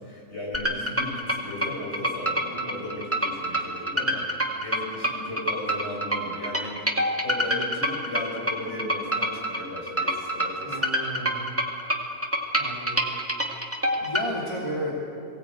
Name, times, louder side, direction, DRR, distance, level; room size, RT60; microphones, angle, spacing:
voice 1, 0.0-10.8 13.9-14.1, left 1 dB, 50° left, -2 dB, 5.7 m, -36 dB
sound 1, 0.5-14.3, equal, 10° right, 1.9 m, -26 dB
voice 2, 10.7-11.5 12.6-13.1 13.4-13.5 14.0-14.9, equal, 20° left, -4 dB, 2.7 m, -33 dB
22.5 x 17.0 x 8.6 m, 2.5 s
omnidirectional pair, 1.4 m